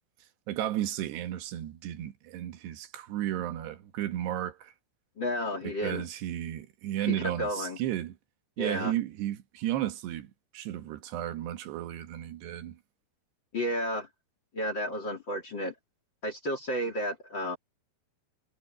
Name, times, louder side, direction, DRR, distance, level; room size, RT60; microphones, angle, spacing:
voice 1, 0.5-4.7 5.8-8.2 8.6-12.8, right 12 dB, 80° right, 3.5 m, -33 dB
voice 2, 5.2-6.0 7.0-7.8 8.6-8.9 13.5-14.1 14.5-15.7 16.2-17.6, equal, 35° left, 2.6 m, -32 dB
omnidirectional pair, 4.8 m